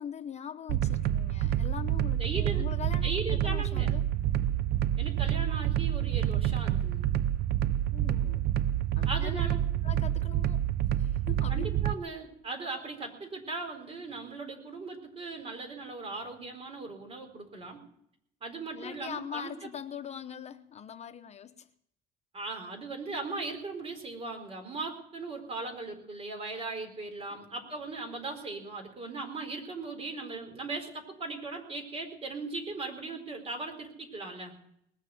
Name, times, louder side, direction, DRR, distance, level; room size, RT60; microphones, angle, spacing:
voice 1, 0.0-4.1 7.9-8.5 9.0-9.5 9.8-10.6 10.9-11.7 18.7-21.7 27.3-27.7, left 8 dB, 40° left, 0.8 m, -42 dB
sound 1, 0.7-11.9, right 12 dB, 70° right, 0.6 m, -28 dB
voice 2, 2.2-2.7 3.0-4.0 5.0-7.1 9.0-9.6 11.5-17.8 18.4-19.5 22.3-34.5, right 3 dB, 35° right, 4.3 m, -38 dB
20.0 x 7.4 x 9.2 m
cardioid pair, 110°, 17 cm